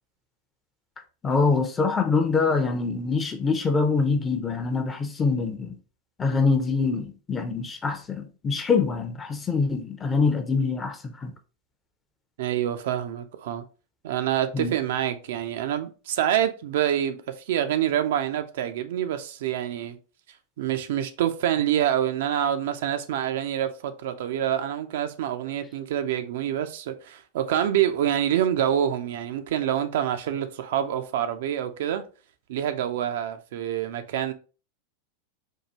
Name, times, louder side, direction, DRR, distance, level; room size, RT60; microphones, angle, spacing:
voice 1, 1.2-5.8 6.2-11.3 14.5-14.7, left 4 dB, 20° left, 0.6 m, -24 dB
voice 2, 12.4-13.6 14.0-20.0 20.6-32.0 32.5-34.3, right 10 dB, 55° right, 0.4 m, -26 dB
4.5 x 2.3 x 2.8 m
figure-of-eight pair, 90°, 0 cm